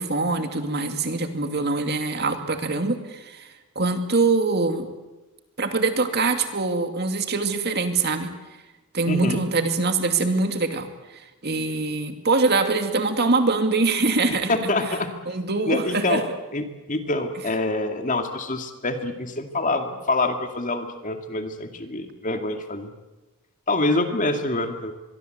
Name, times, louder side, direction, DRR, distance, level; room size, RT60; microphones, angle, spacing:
voice 1, 0.0-3.5 3.8-4.9 5.6-8.3 8.9-10.9 11.4-14.7 15.3-16.2, right 3 dB, 50° right, 7 dB, 2.4 m, -23 dB
voice 2, 9.1-9.4 14.5-15.1 15.7-16.2 16.5-22.9 23.7-24.9, left 2 dB, 35° left, 6 dB, 2.4 m, -26 dB
24.5 x 22.5 x 8.0 m, 1.1 s
head